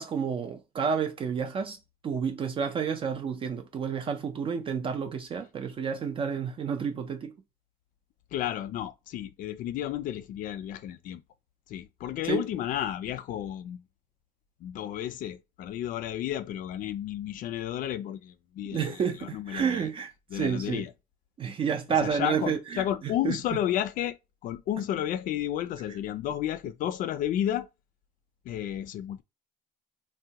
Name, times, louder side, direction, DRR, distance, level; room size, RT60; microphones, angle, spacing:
voice 1, 0.0-7.3 12.2-12.4 18.7-20.8 21.4-23.3, right 6 dB, 35° right, 0.4 m, -30 dB
voice 2, 8.3-11.2 11.7-13.8 14.6-19.9 20.3-20.9 21.9-24.2 24.4-27.7 28.5-29.2, left 11 dB, 55° left, 0.4 m, -32 dB
3.5 x 2.1 x 2.8 m
cardioid pair, 145°, 16 cm